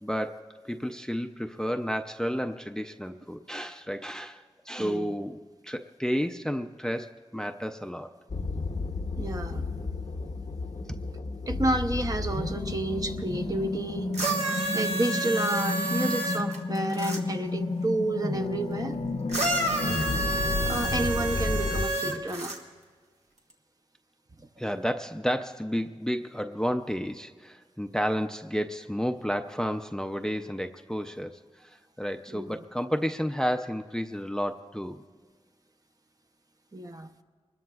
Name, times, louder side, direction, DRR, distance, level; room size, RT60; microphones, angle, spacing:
voice 1, 0.0-8.1 10.9-11.0 24.6-35.0, equal, 5° left, 6 dB, 0.5 m, -31 dB
voice 2, 4.8-5.1 9.2-9.6 11.5-14.5 14.7-19.0 20.6-22.6 32.3-32.6 36.7-37.1, right 2 dB, 35° right, 5 dB, 0.7 m, -30 dB
sound 1, 8.3-21.9, left 3 dB, 70° left, 0.8 m, -32 dB
sound 2, 14.1-17.2 19.3-22.6 23.5-23.6, right 2 dB, 75° right, 1.6 m, -29 dB
25.0 x 20.5 x 2.4 m, 1.5 s
wide cardioid pair, 70°, 11 cm